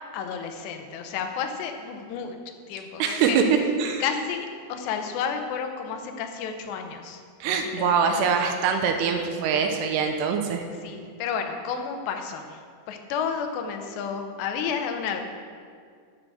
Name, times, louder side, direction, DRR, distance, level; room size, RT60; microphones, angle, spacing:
voice 1, 0.1-2.4 2.7-3.5 4.0-7.2 7.5-8.3 10.8-12.6 12.9-15.2, left 6 dB, 80° left, 5 dB, 3.0 m, -31 dB
voice 2, 3.0-3.4 3.8-4.0 7.4-10.6, right 6 dB, 80° right, 4 dB, 2.7 m, -24 dB
11.0 x 6.2 x 6.5 m, 2.1 s
omnidirectional pair, 4.9 m